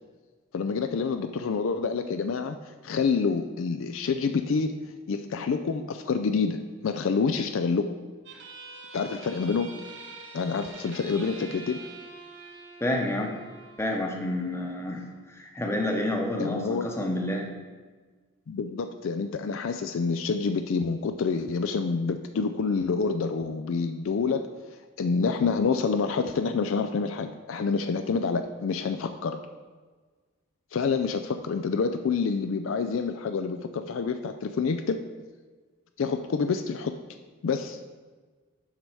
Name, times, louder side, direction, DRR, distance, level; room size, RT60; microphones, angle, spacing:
voice 1, 0.5-2.6 2.8-4.8 5.1-7.9 8.9-9.7 10.3-11.8 16.4-16.9 18.5-24.4 25.0-29.4 30.7-35.0 36.0-36.9 37.4-37.8, left 5 dB, 60° left, 8 dB, 0.4 m, -27 dB
sound 1, 8.3-15.3, right 3 dB, 55° right, 1.2 m, -46 dB
voice 2, 12.8-13.4 13.8-17.5, left 1 dB, 10° left, 1 dB, 0.9 m, -29 dB
7.4 x 5.4 x 4.7 m, 1.4 s
head